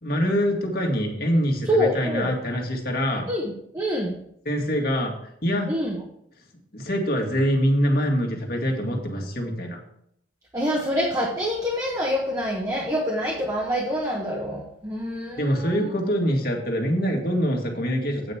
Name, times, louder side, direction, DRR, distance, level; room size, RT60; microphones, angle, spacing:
voice 1, 0.0-3.3 4.5-5.1 5.4-5.7 6.7-9.8 15.4-18.3, equal, 50° left, 1 dB, 2.0 m, -24 dB
voice 2, 1.7-2.3 3.3-3.4 3.7-4.2 5.7-6.0 10.5-15.9, equal, 20° right, -2 dB, 1.2 m, -26 dB
8.8 x 5.2 x 7.1 m, 0.72 s
head